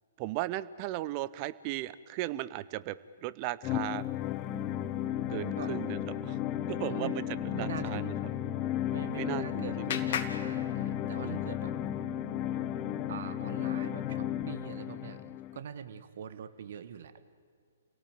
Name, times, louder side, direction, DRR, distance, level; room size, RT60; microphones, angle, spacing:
voice 1, 0.2-4.1 5.3-6.4 6.7-7.2 7.6-8.1 9.1-10.0 11.2-11.4, right 15 dB, 35° right, 17 dB, 0.8 m, -36 dB
sound 1, 3.6-15.6, left 14 dB, 30° left, 0.7 m, -34 dB
sound 2, 4.4-14.4, left 3 dB, 10° left, 3.6 m, -42 dB
voice 2, 6.9-7.2 7.5-8.2 8.9-11.7 13.1-17.1, right 8 dB, 55° right, 12 dB, 1.4 m, -43 dB
Clapping, 8.8-11.4, left 8 dB, 50° left, 2.0 m, -40 dB
29.0 x 17.5 x 9.0 m, 2.2 s
figure-of-eight pair, 125°, 0 cm